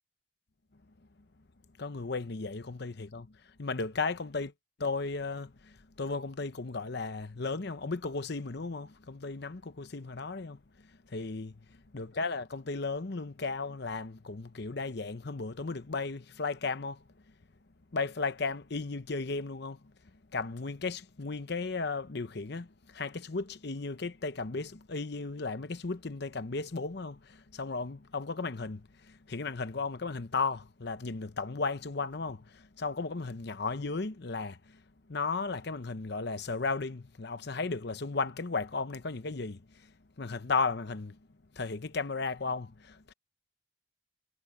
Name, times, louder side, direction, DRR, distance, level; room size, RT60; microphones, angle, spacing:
voice 1, 1.8-3.3 3.6-4.5 4.8-10.6 11.1-11.5 11.9-17.0 17.9-19.8 20.3-34.8 35.1-39.9 40.2-41.2 41.5-43.1, left 4 dB, 55° left, 0.9 m, -35 dB
head